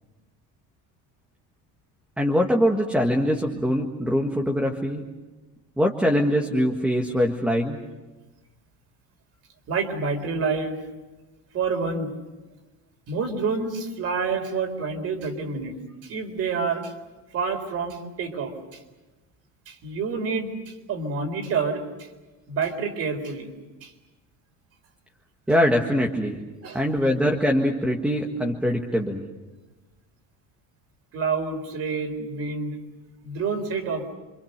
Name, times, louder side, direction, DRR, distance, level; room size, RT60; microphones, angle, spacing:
voice 1, 2.2-5.0 5.8-7.8 25.5-26.4 26.7-29.2, equal, 5° right, 1 dB, 1.6 m, -23 dB
voice 2, 9.7-10.8 11.5-12.1 13.1-15.8 16.0-16.9 17.3-18.8 19.7-22.1 22.5-23.5 23.8-23.9 26.6-26.8 31.1-32.8 33.2-34.1, right 4 dB, 40° right, 7 dB, 3.9 m, -28 dB
28.0 x 26.0 x 6.7 m, 1.2 s
cardioid pair, 175°, 36 cm